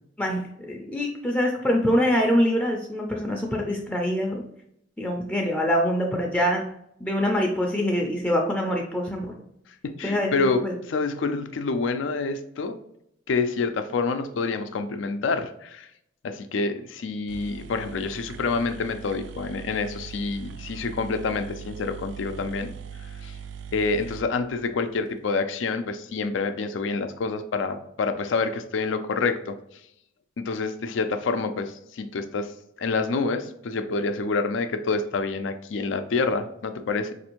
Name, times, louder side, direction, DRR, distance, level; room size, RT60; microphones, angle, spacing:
voice 1, 0.2-4.4 5.0-6.7 7.0-9.3 10.0-10.7, equal, 10° left, 0 dB, 0.4 m, -24 dB
voice 2, 9.8-10.6 10.9-12.8 13.3-15.9 16.2-22.7 23.2-23.4 23.7-29.6 30.4-32.5 32.8-37.1, left 4 dB, 90° left, 9 dB, 0.4 m, -27 dB
sound 1, 17.0-17.1 17.3-25.1, right 7 dB, 75° right, 0.3 m, -41 dB
4.2 x 2.6 x 2.9 m, 0.75 s
head